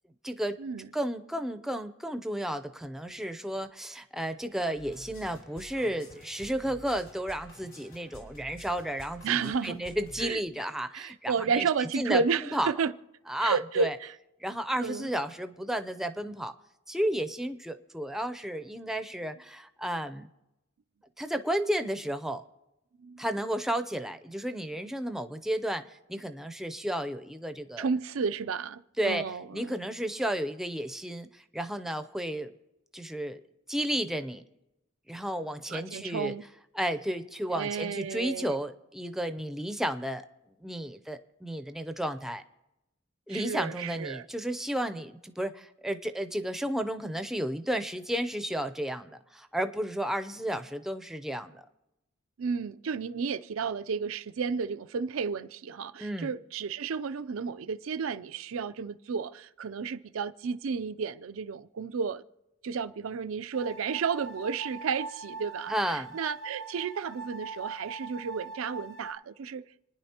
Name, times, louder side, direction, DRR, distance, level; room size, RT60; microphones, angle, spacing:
voice 1, 0.2-0.6 0.9-11.7 12.0-12.2 12.5-12.7 13.3-14.0 14.4-16.5 16.9-20.3 21.2-22.4 23.2-27.9 29.0-29.2 29.5-32.5 32.9-33.4 33.7-34.4 35.1-36.4 36.7-40.2 40.6-42.4 43.3-51.6 56.0-56.3 65.7-66.2, right 1 dB, ahead, 0.5 m, -32 dB
sound 1, 4.7-10.3, equal, 75° left, 3.9 m, -50 dB
voice 2, 9.2-9.8 10.2-10.4 10.9-12.9 13.4-14.1 14.8-15.1 23.0-23.2 27.8-29.8 35.7-36.4 37.5-38.6 43.3-44.2 52.4-62.2 62.6-69.6, right 5 dB, 90° right, 0.5 m, -32 dB
sound 2, 63.5-69.1, right 4 dB, 60° left, 1.1 m, -42 dB
29.5 x 10.0 x 2.9 m
head